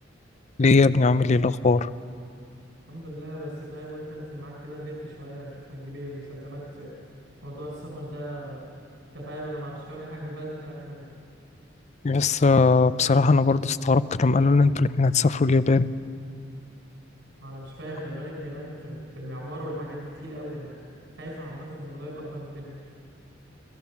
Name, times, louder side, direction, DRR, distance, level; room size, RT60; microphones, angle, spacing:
voice 1, 0.6-1.9 12.0-15.9, left 3 dB, 40° left, 15 dB, 0.5 m, -20 dB
voice 2, 2.9-6.9 7.4-8.6 9.1-11.1 17.4-20.7 21.2-22.7, equal, 80° right, -3 dB, 4.6 m, -38 dB
26.0 x 16.0 x 7.2 m, 2.4 s
head